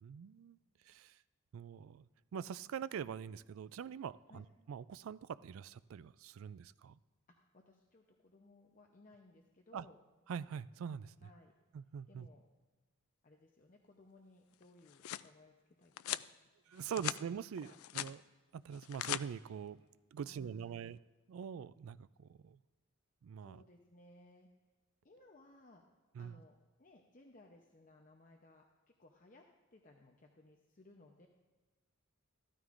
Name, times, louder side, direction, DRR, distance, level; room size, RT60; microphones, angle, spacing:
voice 1, 0.0-0.6 0.9-1.2 1.5-7.0 9.7-9.9 10.3-11.3 11.7-12.3 16.7-18.2 18.5-19.8 20.1-21.0 21.3-22.6 23.2-23.6 26.2-26.3, right 7 dB, 75° right, 16 dB, 0.3 m, -44 dB
voice 2, 7.4-10.0 11.2-11.5 12.1-12.4 13.2-16.2 16.8-17.0 17.6-17.8 20.2-20.9 23.4-24.5 25.0-25.8 26.2-31.3, left 2 dB, 40° left, 2 dB, 0.7 m, -62 dB
sound 1, 14.6-15.3 16.0-16.3 16.7-17.2 17.6-18.1 18.7-19.2, left 13 dB, 90° left, 0.3 m, -40 dB
14.0 x 13.0 x 2.5 m, 1.3 s
head